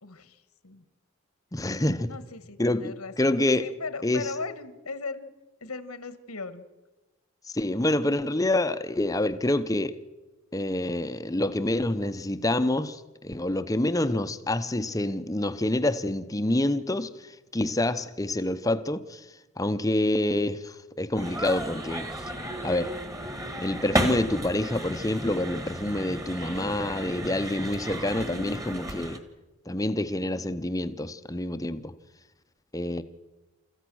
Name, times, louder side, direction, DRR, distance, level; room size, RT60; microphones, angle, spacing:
voice 1, 0.0-0.8 2.1-5.3 5.6-6.6, left 4 dB, 90° left, 1.6 m, -38 dB
voice 2, 1.5-2.1 2.6-3.7 4.0-4.2 7.5-9.9 10.5-19.2 19.6-22.1 22.6-23.0 23.6-29.2 29.7-31.9 32.7-33.0, left 1 dB, 15° left, 0.7 m, -27 dB
sound 1, 21.2-29.2, right 1 dB, 15° right, 1.6 m, -33 dB
30.0 x 14.5 x 6.3 m
head